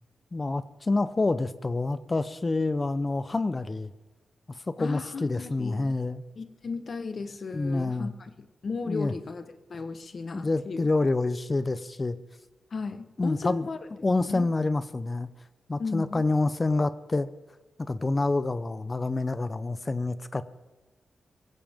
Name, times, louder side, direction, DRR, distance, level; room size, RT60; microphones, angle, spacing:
voice 1, 0.3-3.9 4.5-6.2 7.5-8.1 8.9-9.1 10.3-12.2 13.2-13.7 14.0-15.3 15.7-17.3 17.8-20.6, left 3 dB, 25° left, 14 dB, 0.7 m, -27 dB
voice 2, 4.8-5.9 6.4-10.9 12.7-13.8 14.2-14.5 15.8-16.2, left 4 dB, 45° left, 9 dB, 1.1 m, -35 dB
22.5 x 16.5 x 3.6 m, 1.2 s
wide cardioid pair, 155°, 0 cm